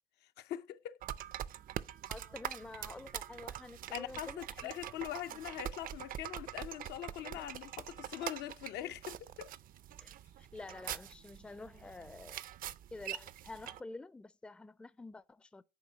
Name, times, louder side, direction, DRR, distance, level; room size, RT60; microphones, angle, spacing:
voice 1, 0.2-1.0 3.9-9.5, left 12 dB, 80° left, 0.6 m, -43 dB
sound 1, 1.0-13.8, right 11 dB, 60° right, 0.5 m, -44 dB
voice 2, 2.1-4.7 5.3-5.4 7.2-7.5 10.0-12.4 12.9-15.6, left 3 dB, 5° left, 0.4 m, -49 dB
10.0 x 4.2 x 3.9 m
cardioid pair, 110°, 17 cm